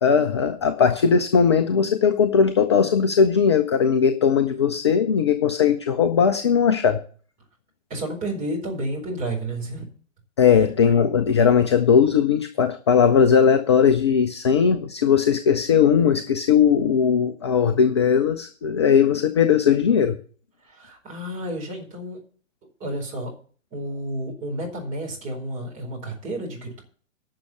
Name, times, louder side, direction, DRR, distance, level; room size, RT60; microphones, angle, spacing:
voice 1, 0.0-7.0 10.4-20.2, left 7 dB, 20° left, 9 dB, 0.4 m, -19 dB
voice 2, 7.9-9.9 10.5-10.6 20.6-22.2 22.8-23.3 23.7-26.8, right 1 dB, 20° right, -1 dB, 4.5 m, -31 dB
11.5 x 6.4 x 7.9 m, 0.44 s
figure-of-eight pair, 120°, 39 cm